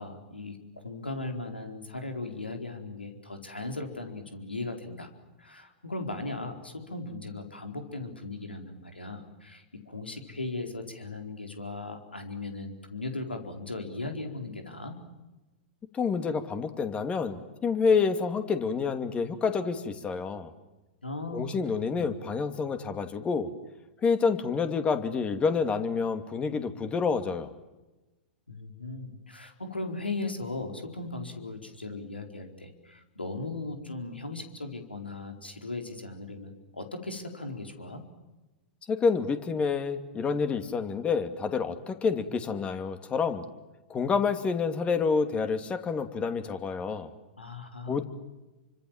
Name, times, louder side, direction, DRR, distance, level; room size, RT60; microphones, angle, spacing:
voice 1, 0.0-5.1 5.4-15.0 21.0-21.6 21.9-22.1 28.5-38.0 47.4-48.0, left 2 dB, 90° left, 5 dB, 4.4 m, -38 dB
voice 2, 15.9-20.5 21.3-23.5 24.0-27.5 38.9-43.4 43.9-47.1 47.9-48.0, left 5 dB, 20° left, 9 dB, 2.6 m, -28 dB
29.0 x 25.5 x 7.5 m, 1.1 s
figure-of-eight pair, 105°, 5 cm